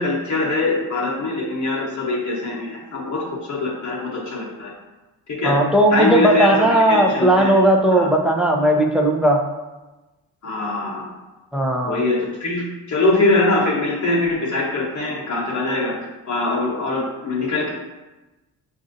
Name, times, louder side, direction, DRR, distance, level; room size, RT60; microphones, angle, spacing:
voice 1, 0.0-4.7 5.3-5.6 5.9-7.5 7.9-8.1 10.4-11.1 11.8-15.9 16.3-17.7, left 2 dB, 45° left, -4 dB, 0.9 m, -22 dB
voice 2, 5.4-9.4 11.5-12.0, right 1 dB, ahead, 2 dB, 0.5 m, -17 dB
6.1 x 2.6 x 2.6 m, 1.1 s
cardioid pair, 85°, 42 cm